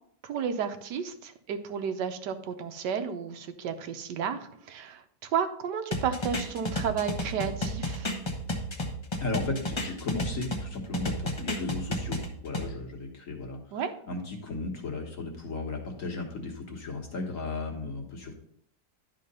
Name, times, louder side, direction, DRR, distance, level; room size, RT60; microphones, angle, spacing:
voice 1, 0.2-8.1 13.7-13.9, right 7 dB, 85° right, 8 dB, 1.4 m, -32 dB
sound 1, 5.9-10.6 10.9-12.7, left 1 dB, 25° left, 0.6 m, -32 dB
voice 2, 9.2-13.6 14.1-18.3, left 3 dB, 50° left, 1 dB, 1.6 m, -35 dB
11.0 x 3.8 x 5.3 m, 0.69 s
omnidirectional pair, 1.8 m